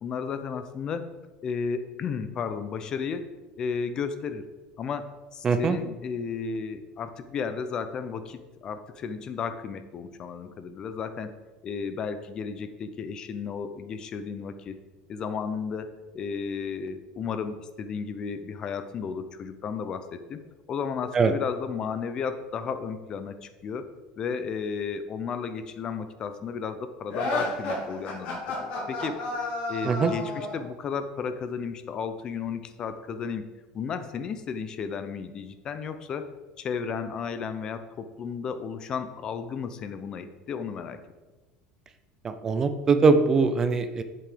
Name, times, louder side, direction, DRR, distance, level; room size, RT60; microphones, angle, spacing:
voice 1, 0.0-1.1 1.4-3.3 3.6-4.5 4.8-11.3 11.6-14.8 15.1-20.4 20.7-23.9 24.2-33.5 33.7-36.3 36.6-41.0, left 6 dB, 25° left, 10 dB, 0.7 m, -33 dB
voice 2, 5.4-5.8 21.1-21.3 29.9-30.1 42.2-44.0, right 4 dB, 20° right, 9 dB, 0.6 m, -22 dB
sound 1, 27.1-30.6, left 2 dB, 50° left, 3.3 m, -31 dB
8.1 x 7.6 x 5.1 m, 1.2 s
cardioid pair, 170°, 3 cm